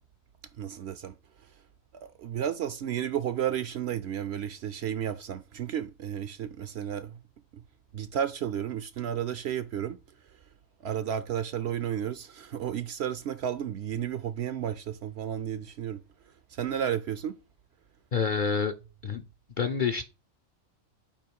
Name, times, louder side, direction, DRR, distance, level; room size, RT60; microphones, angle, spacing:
voice 1, 0.6-1.2 1.4-1.5 2.0-7.2 7.5-7.6 7.9-10.0 10.2-10.4 10.8-17.4, right 9 dB, 65° right, 0.8 m, -33 dB
voice 2, 18.1-18.7 19.0-19.2 19.6-20.0, left 6 dB, 50° left, 0.6 m, -27 dB
8.6 x 3.0 x 4.6 m
omnidirectional pair, 1.4 m